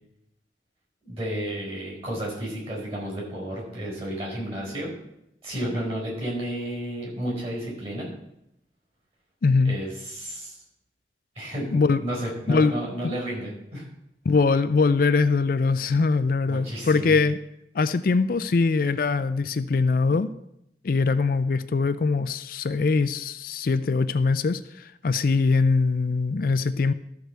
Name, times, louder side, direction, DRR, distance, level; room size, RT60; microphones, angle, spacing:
voice 1, 1.0-4.9 5.4-8.1 9.6-10.5 11.3-13.8 16.5-17.2, right 1 dB, 35° right, -3 dB, 4.7 m, -32 dB
voice 2, 9.4-9.8 11.7-12.0 12.5-12.7 13.0-13.1 14.3-17.4 17.7-20.3 20.8-26.9, left 4 dB, 50° left, 12 dB, 0.4 m, -22 dB
13.0 x 4.7 x 6.7 m, 0.80 s
head